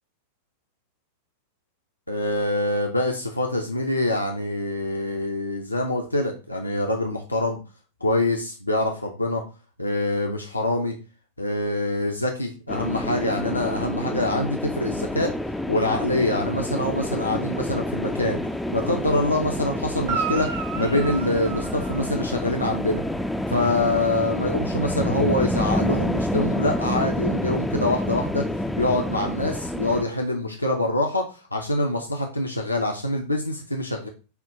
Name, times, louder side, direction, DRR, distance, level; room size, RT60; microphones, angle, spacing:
voice 1, 2.1-7.6 8.0-9.4 9.8-10.9 11.4-15.3 15.7-18.4 18.7-20.5 20.8-23.0 23.5-28.5 28.8-34.1, left 1 dB, 85° left, 2 dB, 0.5 m, -25 dB
sound 1, 12.7-30.0, left 1 dB, 5° left, 0.3 m, -28 dB
Guitar, 20.0-22.6 26.4-26.5, right 6 dB, 50° right, 0.8 m, -32 dB
5.6 x 2.2 x 3.6 m, 0.33 s
figure-of-eight pair, 90°, 0 cm